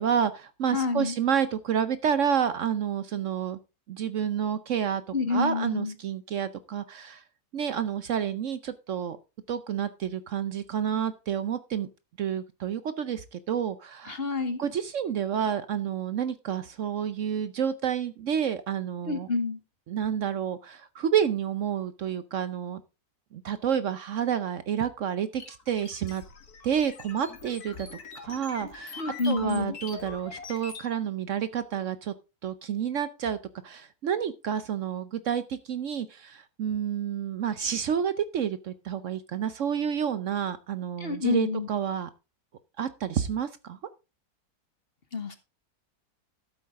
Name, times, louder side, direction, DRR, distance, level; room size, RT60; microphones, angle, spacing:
voice 1, 0.0-3.6 3.9-5.0 5.3-7.2 7.5-9.2 9.5-11.9 12.2-14.2 14.6-19.3 19.9-22.8 23.3-26.2 26.6-27.9 28.2-32.1 32.4-33.4 33.6-42.1 42.8-43.8, right 8 dB, 60° right, 13 dB, 0.9 m, -29 dB
voice 2, 0.7-1.2 5.1-5.9 14.0-14.6 19.0-19.6 29.0-29.8 41.0-41.7 45.1-45.4, left 3 dB, 40° left, 10 dB, 1.3 m, -28 dB
sound 1, 25.4-30.9, left 5 dB, 75° left, 2.1 m, -42 dB
12.5 x 7.9 x 3.6 m, 0.28 s
omnidirectional pair, 1.6 m